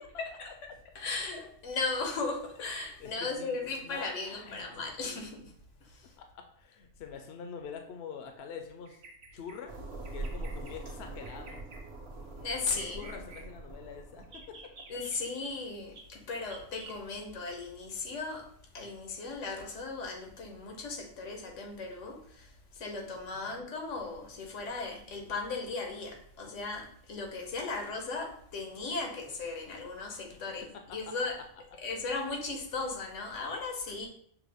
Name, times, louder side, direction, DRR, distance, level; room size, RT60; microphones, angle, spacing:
voice 1, 0.2-5.5 5.8-6.2 12.4-13.1 14.9-18.5 18.7-31.4 31.8-34.1, left 3 dB, 85° left, 2 dB, 1.2 m, -37 dB
voice 2, 3.0-3.6 3.8-5.3 6.2-9.0 9.3-9.7 10.1-11.6 12.7-14.6 23.4-23.7 30.3-31.0, left 6 dB, 65° left, 5 dB, 0.8 m, -46 dB
Bird vocalization bird call bird song, 8.8-9.6 10.0-10.7 11.2-11.8 12.5-13.5 14.2-15.2 15.9-16.0 16.5-17.0, right 4 dB, 80° right, 1.1 m, -50 dB
sound 1, 9.7-14.9, right 2 dB, 60° right, 1.2 m, -43 dB
5.9 x 2.2 x 3.4 m, 0.64 s
omnidirectional pair, 1.2 m